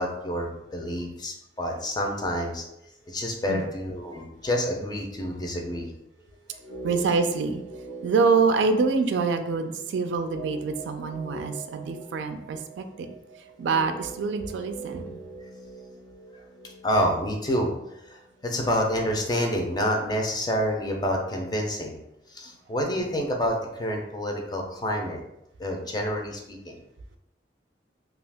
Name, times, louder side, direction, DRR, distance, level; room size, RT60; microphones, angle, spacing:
voice 1, 0.0-2.7 3.1-5.9 16.8-17.7 18.1-22.0 22.3-25.2 25.6-26.8, equal, 25° left, 1 dB, 0.4 m, -28 dB
sound 1, 6.6-18.7 18.9-19.0, right 2 dB, 70° left, 0.7 m, -43 dB
voice 2, 6.8-7.6 8.0-13.1 13.6-15.2, right 4 dB, 85° right, 8 dB, 0.3 m, -25 dB
2.7 x 2.4 x 3.4 m, 0.84 s
head